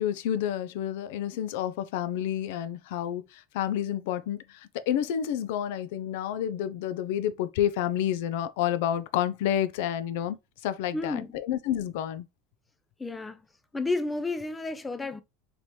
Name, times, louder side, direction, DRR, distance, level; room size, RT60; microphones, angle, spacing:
voice 1, 0.0-4.4 4.9-10.4 10.6-12.3, left 10 dB, 70° left, 0.5 m, -29 dB
voice 2, 10.9-11.3 13.0-13.4 13.7-15.2, left 3 dB, 10° left, 0.4 m, -31 dB
4.3 x 2.9 x 3.2 m
supercardioid pair, 155°, 0 cm